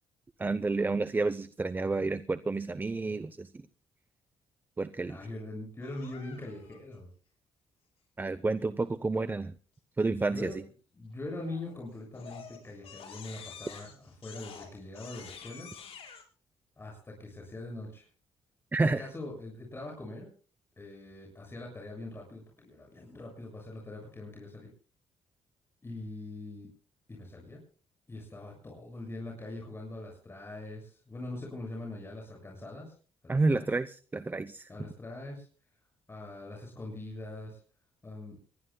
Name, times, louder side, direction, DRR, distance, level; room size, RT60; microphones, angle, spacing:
voice 1, 0.4-3.5 4.8-5.2 8.2-9.5 10.0-10.5 18.7-19.0 33.3-34.7, right 3 dB, 20° right, 13 dB, 0.7 m, -30 dB
voice 2, 5.0-7.1 10.3-10.6 11.0-15.7 16.8-18.1 19.0-20.3 20.8-24.7 25.8-26.7 27.1-27.6 28.1-33.0 33.2-33.7 34.7-35.5 36.1-37.6 38.0-38.4, left 2 dB, 25° left, -1 dB, 7.1 m, -42 dB
Crying sobbing, 5.8-6.8 11.4-11.8 12.1-16.2, left 7 dB, 65° left, 6.0 m, -48 dB
25.5 x 21.0 x 2.3 m, 0.39 s
cardioid pair, 105°, 11 cm